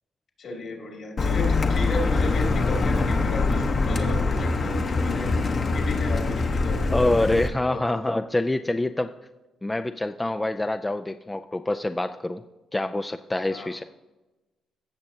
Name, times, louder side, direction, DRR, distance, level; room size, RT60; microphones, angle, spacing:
voice 1, 0.4-6.9 7.7-7.8 13.5-13.7, left 2 dB, 60° left, 2 dB, 2.6 m, -34 dB
Car, 1.2-7.5, left 3 dB, 45° left, 1.0 m, -24 dB
voice 2, 6.9-9.1 9.6-12.4 12.7-13.8, left 2 dB, 15° left, 8 dB, 0.4 m, -26 dB
16.0 x 6.5 x 2.8 m, 1.1 s
cardioid pair, 90°, 0 cm